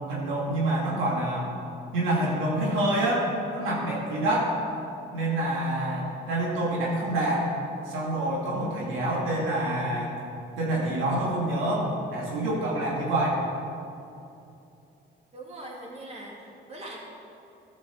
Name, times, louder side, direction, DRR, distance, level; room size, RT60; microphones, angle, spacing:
voice 1, 0.1-1.5 1.9-4.6 5.1-7.5 7.9-10.1 10.6-13.4, right 1 dB, 90° right, -4 dB, 2.5 m, -27 dB
voice 2, 15.3-17.0, right 1 dB, 30° right, -3 dB, 2.5 m, -41 dB
12.5 x 6.0 x 6.4 m, 2.7 s
cardioid pair, 90°, 20 cm